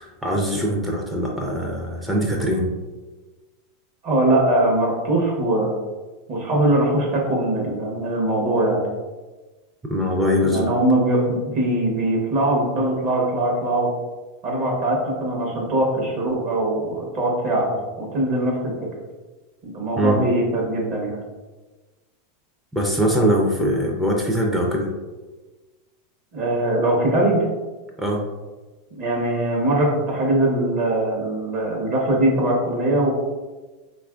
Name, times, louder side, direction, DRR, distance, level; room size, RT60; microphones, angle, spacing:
voice 1, 0.0-2.7 9.9-10.7 20.0-20.2 22.7-24.9 28.0-28.2, equal, 10° right, -1 dB, 0.4 m, -22 dB
voice 2, 4.0-5.7 6.3-8.8 10.4-13.9 14.4-18.7 19.6-21.2 26.3-27.4 28.9-33.1, right 1 dB, 50° right, -1 dB, 0.8 m, -21 dB
2.9 x 2.4 x 2.3 m, 1.2 s
hypercardioid pair, 110°, 0 cm